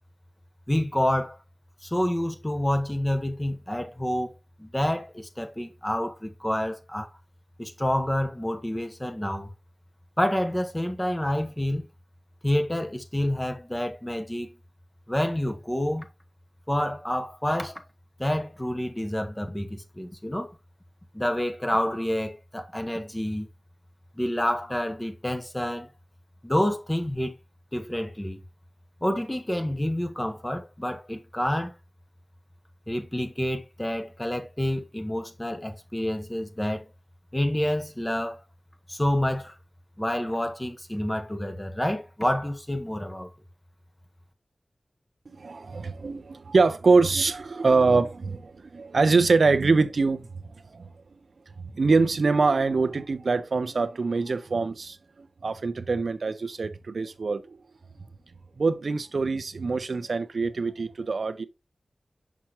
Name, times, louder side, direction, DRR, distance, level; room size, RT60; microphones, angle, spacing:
voice 1, 0.7-1.4 1.8-4.3 4.6-7.1 7.6-9.5 10.2-11.8 12.4-14.5 15.1-16.1 16.7-17.8 18.2-20.5 21.1-23.5 24.2-25.9 26.4-27.3 27.7-28.4 29.0-31.7 32.9-36.9 37.3-38.4 38.9-39.6 40.0-43.3, left 1 dB, 15° left, 1.1 m, -28 dB
voice 2, 45.3-51.2 51.6-57.6 58.6-61.4, right 4 dB, 80° right, 0.7 m, -24 dB
6.0 x 5.8 x 3.1 m
wide cardioid pair, 75°, 0 cm